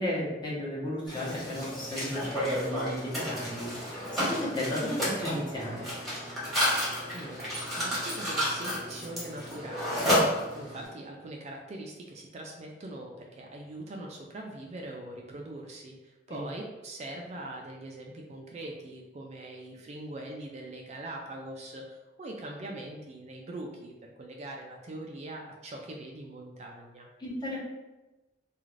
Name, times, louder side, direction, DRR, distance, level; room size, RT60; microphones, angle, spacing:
voice 1, 0.0-5.8 16.3-16.4 27.2-27.6, left 1 dB, 25° left, -6 dB, 0.8 m, -34 dB
Mechanisms, 1.1-10.9, equal, ahead, 1.0 m, -31 dB
voice 2, 7.1-27.1, right 1 dB, 35° right, 0 dB, 0.3 m, -42 dB
2.4 x 2.4 x 3.1 m, 1.1 s
head